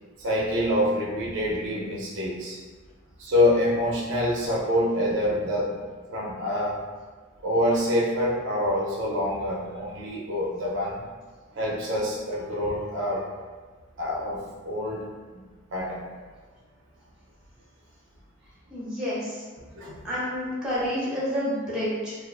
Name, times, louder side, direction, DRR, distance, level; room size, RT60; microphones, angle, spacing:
voice 1, 0.2-2.6 3.2-5.7 6.1-6.8 7.4-11.0 11.6-13.3 14.0-15.1 15.7-16.0 19.7-20.0, left 1 dB, 60° right, -3 dB, 0.4 m, -26 dB
voice 2, 18.7-19.4 20.0-22.1, equal, 5° right, -8 dB, 0.7 m, -29 dB
2.3 x 2.3 x 2.4 m, 1.4 s
head